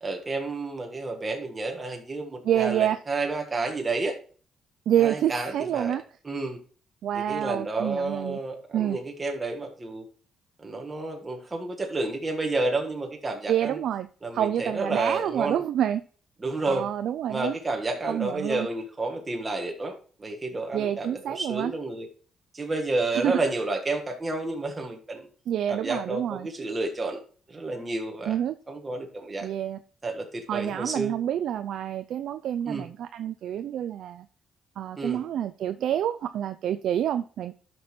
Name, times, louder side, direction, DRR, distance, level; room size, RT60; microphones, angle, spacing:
voice 1, 0.0-4.1 5.0-5.9 6.2-6.6 7.1-10.0 10.6-13.8 14.2-15.6 16.4-16.9 17.3-19.9 20.2-22.1 22.5-25.3 25.7-27.2 27.5-28.4 28.7-29.5 30.0-31.1 32.7-32.9 35.0-35.2, right 2 dB, 25° right, 2 dB, 1.5 m, -30 dB
voice 2, 2.4-3.0 4.9-6.0 7.0-8.4 8.7-9.0 13.5-14.1 14.3-16.0 16.7-17.5 18.1-18.7 20.7-21.7 23.1-23.4 25.5-26.5 28.3-28.6 29.4-29.8 30.5-34.3 34.8-37.5, right 10 dB, 75° right, 10 dB, 0.4 m, -27 dB
12.5 x 6.0 x 3.1 m, 0.43 s
cardioid pair, 90°, 0 cm